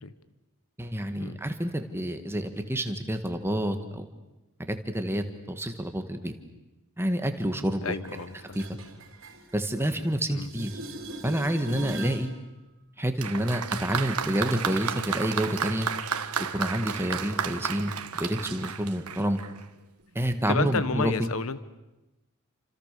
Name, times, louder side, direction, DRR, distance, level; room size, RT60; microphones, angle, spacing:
voice 1, 0.8-4.1 4.7-6.3 7.0-8.0 8.5-8.6 9.5-10.8 11.2-12.3 13.0-15.9 16.4-19.4 20.2-21.1, equal, 10° right, 7 dB, 1.7 m, -28 dB
voice 2, 7.8-8.6 10.3-10.5 20.5-21.6, left 4 dB, 70° left, 14 dB, 1.1 m, -31 dB
sound 1, 8.0-10.1 10.4-12.3 18.0-18.1, right 2 dB, 60° right, 3.7 m, -40 dB
Applause, 13.2-19.7 20.6-20.7, right 7 dB, 85° right, 1.4 m, -32 dB
29.5 x 26.5 x 6.8 m, 1.0 s
head